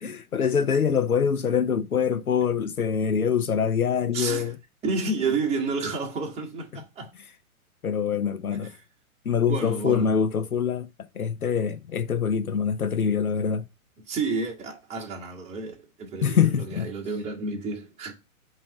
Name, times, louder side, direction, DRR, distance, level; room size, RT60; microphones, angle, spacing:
voice 1, 0.0-4.6 6.7-6.8 7.8-8.7 9.2-10.9 11.1-13.7 16.2-16.9, left 7 dB, 85° left, 0.8 m, -24 dB
voice 2, 4.1-4.5 4.8-7.1 8.6-8.7 9.5-10.1 14.1-18.1, right 4 dB, 15° right, 1.5 m, -30 dB
5.6 x 3.1 x 5.4 m
figure-of-eight pair, 120°, 43 cm